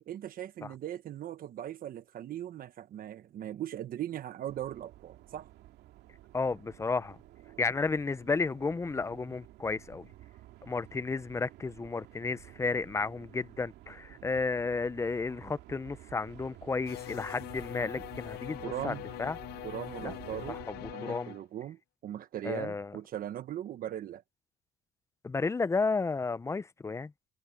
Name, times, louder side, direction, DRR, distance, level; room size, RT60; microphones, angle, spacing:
voice 1, 0.1-5.5 18.6-19.0 19.6-20.6 20.9-24.2, right 11 dB, 55° right, 1.1 m, -39 dB
sound 1, 4.5-20.9, right 15 dB, 85° right, 2.3 m, -52 dB
voice 2, 6.3-7.2 7.6-10.1 10.6-19.4 20.0-20.1 20.5-21.3 22.4-22.9 25.2-27.1, left 4 dB, 15° left, 0.6 m, -32 dB
sound 2, 16.9-21.4, left 17 dB, 70° left, 0.5 m, -43 dB
cardioid pair, 110°, 17 cm